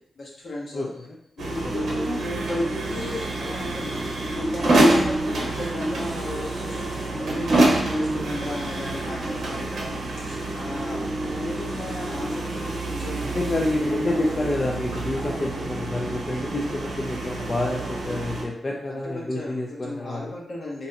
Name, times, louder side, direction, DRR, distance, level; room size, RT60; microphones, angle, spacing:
voice 1, 0.2-0.9 1.4-13.3 13.9-14.3 15.1-15.6 18.9-20.9, left 1 dB, 70° left, -4 dB, 1.0 m, -35 dB
voice 2, 0.7-1.2 1.6-1.7 13.2-20.4, left 2 dB, 40° left, -2 dB, 0.4 m, -28 dB
sound 1, 1.4-18.4, right 1 dB, 85° right, 0.6 m, -27 dB
2.6 x 2.2 x 3.9 m, 0.76 s
cardioid pair, 75°, 0 cm